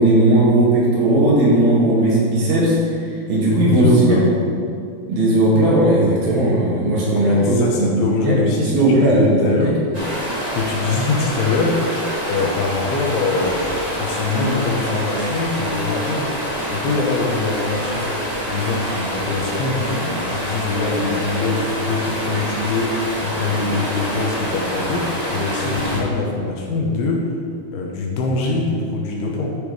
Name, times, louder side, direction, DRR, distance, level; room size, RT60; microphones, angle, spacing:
voice 1, 0.0-2.8 3.3-4.2 5.1-8.3 8.6-9.7, right 1 dB, 65° right, -5 dB, 3.3 m, -16 dB
voice 2, 3.7-4.3 7.1-9.8 10.5-13.6 14.0-16.3 16.7-18.2 18.5-27.3 27.7-29.5, left 3 dB, 75° left, -1 dB, 2.7 m, -23 dB
Stream, 9.9-26.0, equal, 25° right, 0.7 m, -26 dB
10.5 x 5.1 x 4.8 m, 2.4 s
omnidirectional pair, 4.9 m